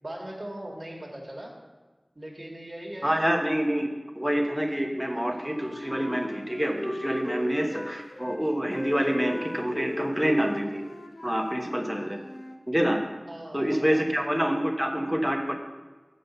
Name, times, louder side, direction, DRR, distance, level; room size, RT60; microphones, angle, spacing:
voice 1, 0.0-1.5 2.2-3.2 13.3-14.0, right 1 dB, 50° right, -1 dB, 2.1 m, -39 dB
voice 2, 3.0-10.9 11.2-12.2 12.7-13.0 13.5-15.5, equal, 10° right, 2 dB, 1.2 m, -27 dB
Wind instrument woodwind instrument, 5.0-8.4 8.7-12.6, left 1 dB, 70° left, 1.0 m, -39 dB
7.6 x 5.6 x 6.8 m, 1.3 s
wide cardioid pair, 45°, 0 cm